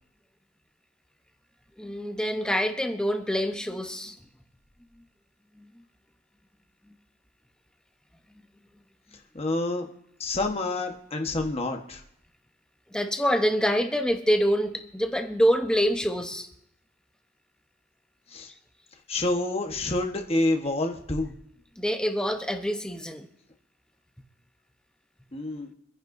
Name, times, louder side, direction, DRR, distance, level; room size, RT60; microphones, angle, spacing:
voice 1, 1.8-4.1 5.6-5.7 12.9-16.5 21.8-23.3, equal, 5° left, 5 dB, 0.9 m, -26 dB
voice 2, 9.3-9.9 10.2-12.0 18.3-18.5 19.1-21.3 25.3-25.7, left 2 dB, 30° left, 3 dB, 1.3 m, -28 dB
25.5 x 10.5 x 2.7 m, 0.76 s
head